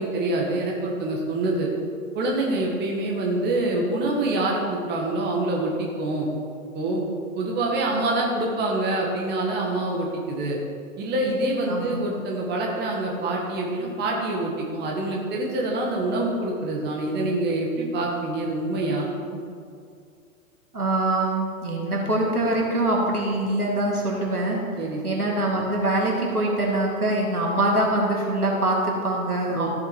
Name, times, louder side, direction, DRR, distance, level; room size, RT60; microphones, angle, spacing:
voice 1, 0.0-1.7 2.1-6.3 6.7-7.0 7.4-10.6 11.0-19.1 24.8-25.0 29.5-29.7, right 2 dB, 25° right, -1 dB, 1.8 m, -26 dB
voice 2, 11.7-12.0 20.7-24.6 25.0-29.7, right 1 dB, 85° right, -2 dB, 2.5 m, -24 dB
14.0 x 7.0 x 4.7 m, 2.3 s
figure-of-eight pair, 110°, 44 cm